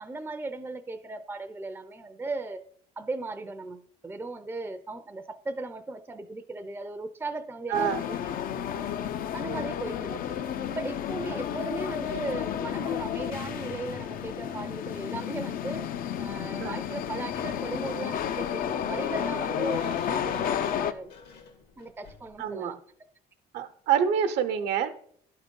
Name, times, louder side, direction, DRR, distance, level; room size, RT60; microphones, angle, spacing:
voice 1, 0.0-2.6 3.0-8.2 8.7-8.9 9.3-15.9 16.2-21.1 21.8-22.8, right 3 dB, 15° right, 7 dB, 0.5 m, -37 dB
sound 1, 7.7-20.9, left 9 dB, 60° left, 0.5 m, -32 dB
voice 2, 7.7-8.1 16.6-16.7 22.4-22.8 23.5-24.9, right 8 dB, 80° right, 8 dB, 0.9 m, -27 dB
Sliding door, 19.6-22.4, left 5 dB, 75° left, 1.6 m, -49 dB
11.0 x 3.7 x 5.3 m, 0.63 s
cardioid pair, 110°, 17 cm